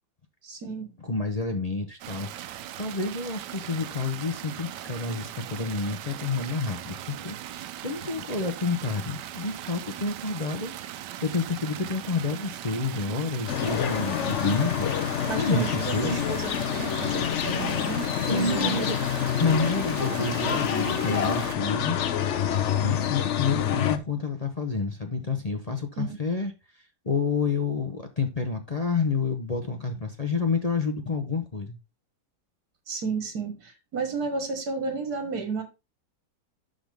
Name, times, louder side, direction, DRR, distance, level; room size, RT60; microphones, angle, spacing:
voice 1, 0.4-0.9 15.3-18.8 26.0-26.1 32.9-35.6, right 4 dB, 70° right, 2.2 m, -32 dB
voice 2, 1.0-16.2 18.3-18.9 19.4-22.0 22.8-31.8, left 4 dB, 35° left, 0.7 m, -29 dB
sound 1, 2.0-21.6, right 12 dB, 90° right, 1.3 m, -39 dB
sound 2, 13.5-24.0, left 9 dB, 60° left, 0.8 m, -27 dB
11.5 x 3.9 x 3.5 m
omnidirectional pair, 1.8 m